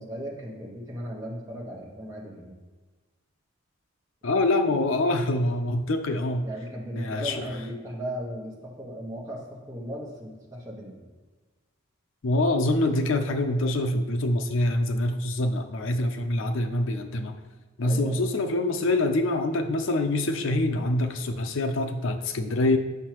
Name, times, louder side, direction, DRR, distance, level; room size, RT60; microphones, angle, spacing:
voice 1, 0.0-2.6 6.4-11.0 17.8-18.2, equal, 15° right, -3 dB, 1.1 m, -37 dB
voice 2, 4.2-6.5 7.0-7.5 12.2-17.4 17.8-22.8, left 2 dB, 65° left, 7 dB, 0.5 m, -25 dB
7.8 x 5.5 x 3.0 m, 1.3 s
head